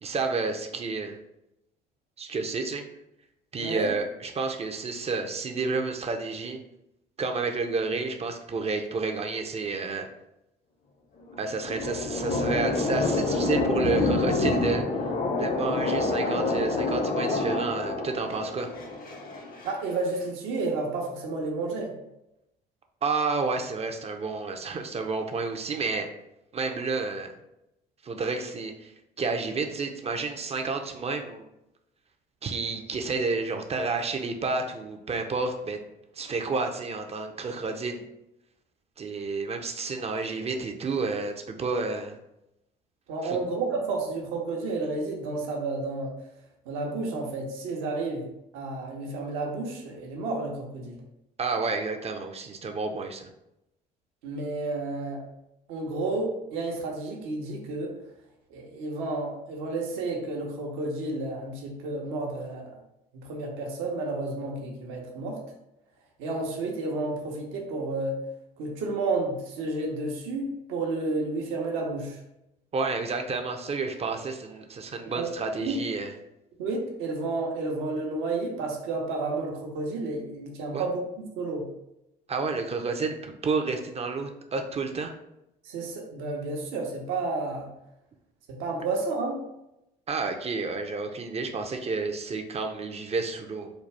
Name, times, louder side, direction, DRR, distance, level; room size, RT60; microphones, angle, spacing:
voice 1, 0.0-1.2 2.2-2.8 3.5-6.6 7.2-10.1 11.4-14.8 15.3-18.7 23.0-26.1 26.5-27.3 28.0-28.9 29.2-31.4 32.4-35.8 36.2-38.1 39.0-42.2 43.2-43.4 51.4-53.3 72.7-76.1 80.7-80.8 82.3-85.1 90.1-93.7, right 4 dB, 30° right, 5 dB, 0.6 m, -30 dB
voice 2, 3.6-3.9 19.6-21.9 43.1-46.1 46.7-48.2 48.5-51.0 54.2-55.2 55.7-57.9 58.5-62.7 63.1-65.4 66.2-68.2 68.6-72.2 75.1-75.3 75.6-75.8 76.6-81.6 85.7-87.7 88.5-89.4, right 3 dB, 70° right, 0 dB, 0.9 m, -31 dB
sound 1, 11.2-19.7, left 3 dB, 45° left, 0.7 m, -27 dB
4.0 x 2.3 x 3.3 m, 0.87 s
hypercardioid pair, 60°, 21 cm